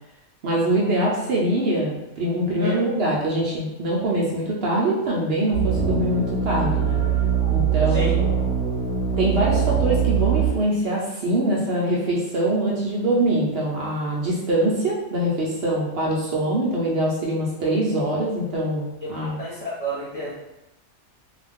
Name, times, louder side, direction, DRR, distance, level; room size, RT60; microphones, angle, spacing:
voice 1, 0.4-7.0 7.5-8.2 9.2-19.4, right 1 dB, 65° right, -4 dB, 0.8 m, -23 dB
sound 1, 5.5-10.5, right 8 dB, 85° right, 1.0 m, -22 dB
voice 2, 19.4-20.3, right 1 dB, 30° left, -9 dB, 1.0 m, -30 dB
2.4 x 2.3 x 3.4 m, 0.92 s
omnidirectional pair, 1.2 m